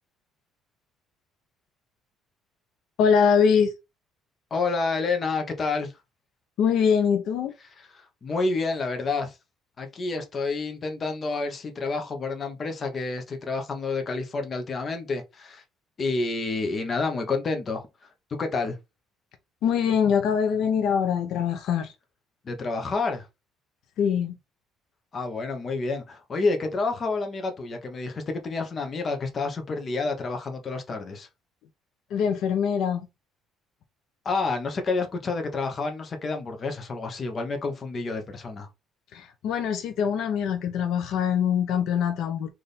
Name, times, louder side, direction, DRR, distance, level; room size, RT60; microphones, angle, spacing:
voice 1, 3.0-3.7 6.6-7.5 19.6-21.9 24.0-24.4 32.1-33.0 39.1-42.5, left 7 dB, 60° left, 0.5 m, -23 dB
voice 2, 4.5-5.9 7.8-7.9 8.2-9.3 9.8-15.6 16.0-17.8 18.4-18.8 22.4-23.3 25.1-31.3 34.2-38.7, left 3 dB, 25° left, 0.8 m, -29 dB
3.4 x 2.5 x 4.1 m
cardioid pair, 165°, 0 cm